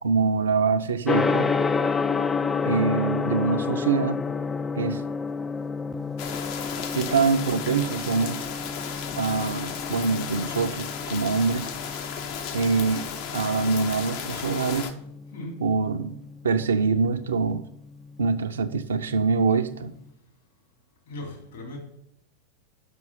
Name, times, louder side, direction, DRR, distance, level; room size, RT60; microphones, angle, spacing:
voice 1, 0.0-1.5 2.7-4.2 4.8-5.0 6.9-8.4 9.2-11.7 12.5-13.1 13.3-14.9 15.6-16.1 16.4-17.6 18.2-19.9, right 4 dB, 70° right, 7 dB, 0.6 m, -24 dB
Gong, 1.1-20.0, left 5 dB, 15° left, 0.4 m, -31 dB
sound 1, 6.2-14.9, left 7 dB, 45° left, 0.8 m, -34 dB
voice 2, 21.1-21.8, left 2 dB, 60° left, -1 dB, 3.5 m, -38 dB
6.1 x 6.1 x 7.3 m, 0.76 s
figure-of-eight pair, 90°, 0 cm